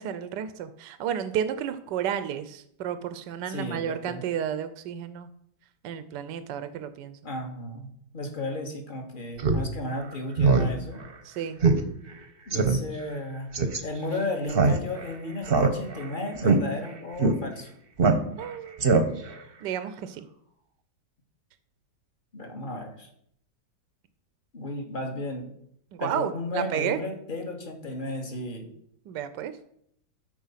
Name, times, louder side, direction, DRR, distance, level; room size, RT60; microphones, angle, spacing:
voice 1, 0.0-5.3 5.8-7.2 11.2-11.6 18.4-18.8 19.6-20.3 25.9-27.0 29.1-29.5, right 9 dB, 85° right, 11 dB, 1.3 m, -32 dB
voice 2, 3.5-4.2 7.2-7.9 8.1-11.0 12.5-13.5 13.8-17.7 22.3-23.1 24.5-25.5 26.0-28.7, left 2 dB, 30° left, 3 dB, 1.7 m, -34 dB
Speech synthesizer, 9.4-9.6 10.0-10.1 10.4-10.7 11.0-11.1 11.6-11.8 12.1-12.2 12.5-12.8 13.5-13.8 14.5-15.1 15.5-16.1 16.4-16.6 17.2-17.3 18.0-18.5 18.8-19.3, right 4 dB, 40° right, 1.0 m, -21 dB
13.0 x 4.5 x 5.7 m, 0.71 s
omnidirectional pair, 1.9 m